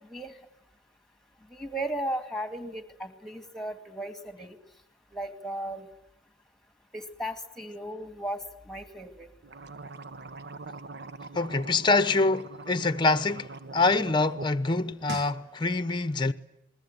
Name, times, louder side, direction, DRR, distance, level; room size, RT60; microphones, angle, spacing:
voice 1, 1.5-4.6 5.1-5.9 6.9-9.3, right 1 dB, ahead, 2.3 m, -36 dB
sound 1, 9.4-14.5 14.8-15.4, right 3 dB, 55° right, 1.0 m, -42 dB
voice 2, 11.3-16.3, left 3 dB, 25° left, 0.9 m, -25 dB
28.0 x 21.0 x 9.3 m
head